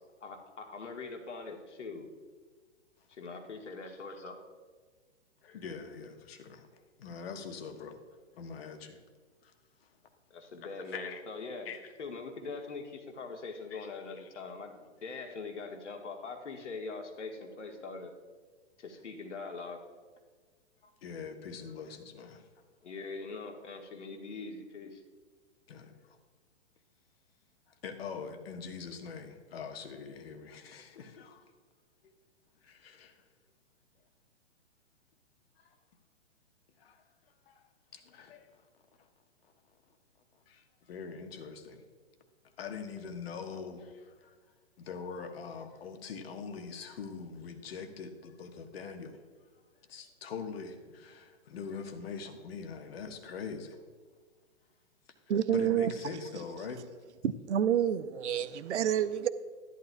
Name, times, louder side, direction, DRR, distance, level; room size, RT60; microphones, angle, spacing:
voice 1, 0.2-2.1 3.1-4.4 10.3-11.7 12.0-18.2 18.8-19.8 22.8-25.0, left 4 dB, 70° left, 3 dB, 1.6 m, -42 dB
voice 2, 5.4-6.7 7.0-8.0 8.3-9.0 9.4-9.5 10.9-11.2 11.6-11.8 13.7-13.9 20.8-22.4 25.7-26.2 27.7-31.5 32.0-32.1 32.6-33.2 35.6-35.7 36.8-37.0 37.5-37.6 37.9-38.5 40.5-41.8 42.6-44.3 44.8-49.2 49.9-53.8 55.5-56.8, left 5 dB, 55° left, 6 dB, 1.3 m, -43 dB
voice 3, 55.3-55.9 57.2-59.3, right 10 dB, 70° right, 15 dB, 0.6 m, -28 dB
13.5 x 11.0 x 2.3 m, 1.5 s
figure-of-eight pair, 120°, 36 cm